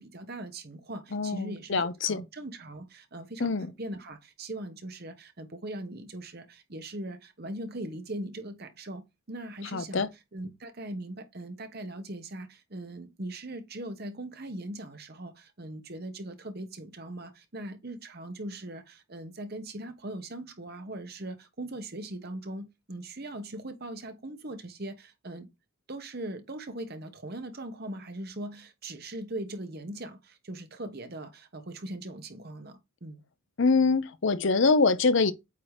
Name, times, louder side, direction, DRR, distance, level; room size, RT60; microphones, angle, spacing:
voice 1, 0.0-25.5 25.9-33.2, right 1 dB, 45° right, 1.1 m, -40 dB
voice 2, 1.1-2.2 3.4-3.7 9.7-10.1 33.6-35.3, left 4 dB, 60° left, 0.6 m, -24 dB
8.5 x 2.9 x 4.8 m
head